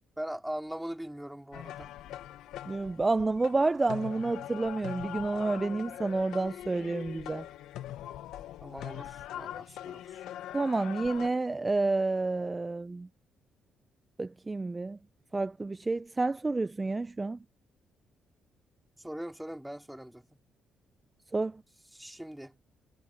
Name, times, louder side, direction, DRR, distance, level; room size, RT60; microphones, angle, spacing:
voice 1, 0.2-1.9 8.6-10.3 19.0-20.3 21.9-22.6, right 1 dB, 5° right, 4.1 m, -41 dB
sound 1, 1.5-11.3, left 12 dB, 90° left, 1.3 m, -42 dB
voice 2, 2.7-7.4 10.5-13.1 14.2-15.0 15.3-17.4 21.3-21.6, right 3 dB, 20° right, 0.6 m, -29 dB
cardioid pair, 90°, 0 cm